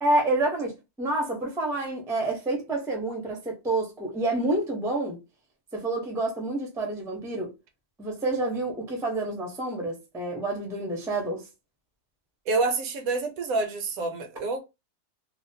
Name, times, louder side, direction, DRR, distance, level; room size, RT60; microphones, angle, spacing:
voice 1, 0.0-5.2 5.7-7.5 8.0-11.4, right 2 dB, 5° right, 0.4 m, -28 dB
voice 2, 12.5-14.6, right 3 dB, 75° right, 1.0 m, -27 dB
2.7 x 2.1 x 2.7 m
omnidirectional pair, 1.6 m